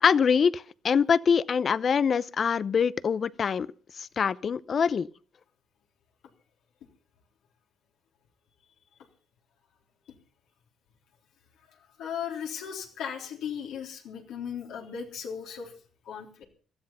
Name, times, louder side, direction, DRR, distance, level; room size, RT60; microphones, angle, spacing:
voice 1, 0.0-3.7 3.9-5.1, left 6 dB, 50° left, 0.7 m, -24 dB
voice 2, 12.0-15.7 16.1-16.4, left 8 dB, 85° left, 3.5 m, -36 dB
17.5 x 13.0 x 5.6 m
cardioid pair, 90°, 0 cm